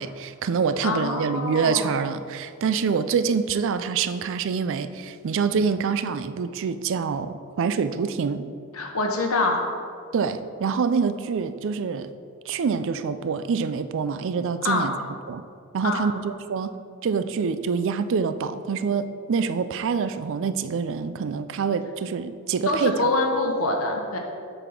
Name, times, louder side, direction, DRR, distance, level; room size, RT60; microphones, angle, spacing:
voice 1, 0.0-8.5 10.1-12.1 12.5-14.9 15.3-15.4 15.7-16.8 17.0-23.1, right 5 dB, 60° right, 12 dB, 0.4 m, -26 dB
voice 2, 0.8-1.9 8.7-9.6 14.6-14.9 15.8-16.1 22.7-24.2, left 2 dB, 80° left, 2 dB, 1.1 m, -25 dB
8.1 x 4.1 x 5.9 m, 2.3 s
head